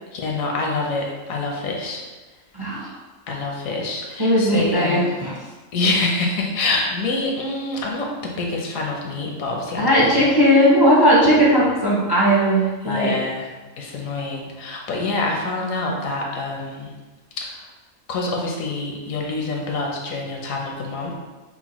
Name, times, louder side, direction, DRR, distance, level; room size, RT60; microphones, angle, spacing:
voice 1, 0.1-2.0 3.3-5.2 5.7-10.3 12.8-16.9 17.4-17.7 18.1-21.2, left 3 dB, 75° left, 0 dB, 1.1 m, -26 dB
voice 2, 2.5-2.9 4.2-5.3 9.8-13.2, equal, 25° right, -6 dB, 0.6 m, -17 dB
5.6 x 2.2 x 3.0 m, 1.2 s
omnidirectional pair, 1.4 m